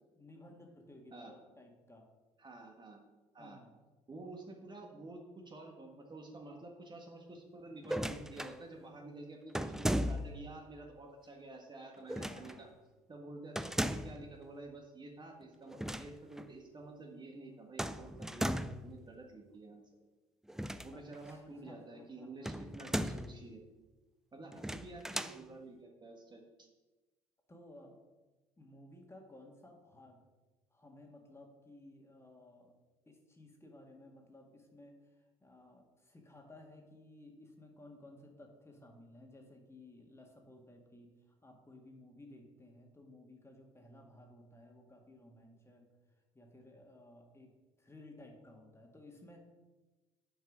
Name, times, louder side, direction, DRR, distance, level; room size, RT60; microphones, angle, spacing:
voice 1, 0.1-2.1 3.4-3.7 12.1-12.7 20.9-22.5 24.6-24.7 27.5-28.0 28.6-30.3 30.7-32.7 33.1-41.1 41.4-45.9 46.3-47.5 47.8-49.4, left 1 dB, 15° left, 1 dB, 1.9 m, -57 dB
voice 2, 2.4-3.0 3.3-3.6 4.1-12.7 13.1-19.8 20.8-23.6 24.3-26.7, right 2 dB, 30° right, 2 dB, 1.5 m, -50 dB
sound 1, 7.8-8.6 9.5-10.5 12.1-12.6 13.6-14.2 15.7-16.1 16.4-16.5 17.8-18.9 20.5-21.3 22.4-23.4 24.5-25.4, equal, 5° right, 0.4 m, -37 dB
7.6 x 4.7 x 6.2 m, 1.2 s
supercardioid pair, 65°, 15 cm